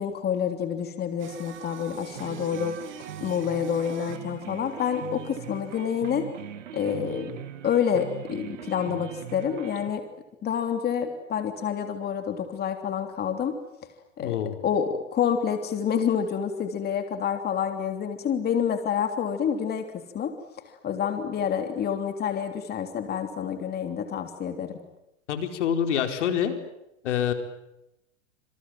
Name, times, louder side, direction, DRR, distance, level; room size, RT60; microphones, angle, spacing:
voice 1, 0.0-2.8 3.2-6.3 6.7-7.3 7.6-10.0 10.4-13.6 14.2-14.4 14.6-20.3 20.8-24.8, left 8 dB, 25° left, 7 dB, 3.2 m, -28 dB
Singing, 1.2-6.2, right 9 dB, 30° right, 3.0 m, -46 dB
sound 1, 2.0-9.9, right 10 dB, 80° right, 2.6 m, -41 dB
voice 2, 14.2-14.6 25.3-26.5 27.0-27.3, left 9 dB, 70° left, 7 dB, 4.6 m, -26 dB
27.5 x 26.5 x 7.8 m, 0.87 s
hypercardioid pair, 120°, 37 cm